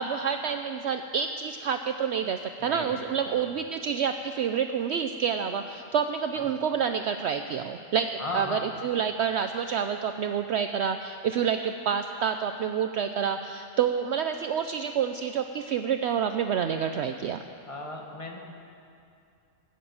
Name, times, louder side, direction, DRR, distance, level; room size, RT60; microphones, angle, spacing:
voice 1, 0.0-17.4, right 7 dB, 65° right, 7 dB, 0.8 m, -28 dB
voice 2, 2.6-3.0 3.2-3.4 6.3-6.5 8.2-8.7 17.6-18.4, left 2 dB, 25° left, 1 dB, 1.7 m, -36 dB
19.5 x 7.5 x 8.6 m, 2.5 s
omnidirectional pair, 1.3 m